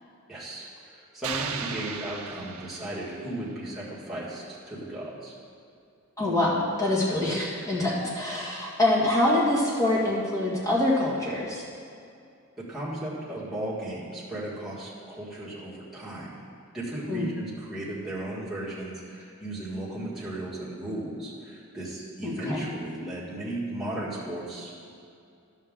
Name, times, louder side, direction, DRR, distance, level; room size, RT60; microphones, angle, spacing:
voice 1, 0.3-5.3 12.6-16.5 16.7-24.7, right 1 dB, ahead, -9 dB, 1.8 m, -35 dB
sound 1, 1.2-3.4, right 6 dB, 90° right, 0.7 m, -36 dB
voice 2, 6.2-11.7 17.1-17.3 22.2-22.6, left 1 dB, 15° left, -6 dB, 1.8 m, -25 dB
11.0 x 7.3 x 3.7 m, 2.5 s
head